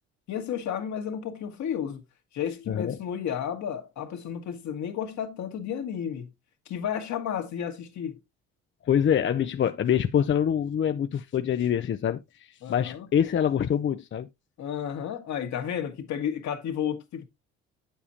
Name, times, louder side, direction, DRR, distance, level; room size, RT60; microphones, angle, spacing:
voice 1, 0.3-2.0 2.3-6.3 6.7-8.2 12.6-13.1 14.6-17.3, left 8 dB, 65° left, 1.8 m, -32 dB
voice 2, 2.7-3.0 8.8-14.3, left 9 dB, 40° left, 0.6 m, -25 dB
8.3 x 7.3 x 2.8 m
supercardioid pair, 75°, 30 cm